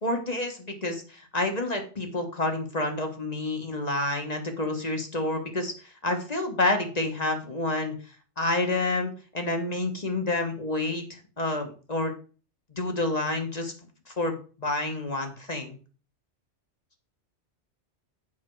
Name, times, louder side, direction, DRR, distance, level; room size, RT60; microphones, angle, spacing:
voice 1, 0.0-7.9 8.4-12.1 12.8-13.7 14.1-15.8, left 2 dB, 35° left, 4 dB, 1.4 m, -29 dB
7.8 x 5.1 x 4.6 m, 0.37 s
omnidirectional pair, 1.2 m